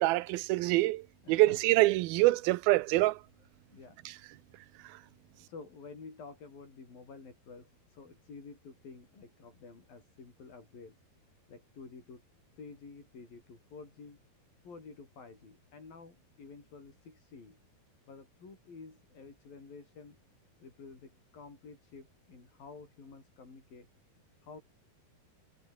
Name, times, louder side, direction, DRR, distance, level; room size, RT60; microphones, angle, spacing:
voice 1, 0.0-1.0 1.3-3.2, right 19 dB, 80° right, 2.5 m, -25 dB
voice 2, 1.2-1.8 3.7-4.0 5.5-11.0 11.5-12.2 12.6-14.2 14.6-17.6 18.1-20.2 20.6-23.9 24.4-24.6, left 4 dB, 65° left, 8.6 m, -50 dB
omnidirectional pair, 4.4 m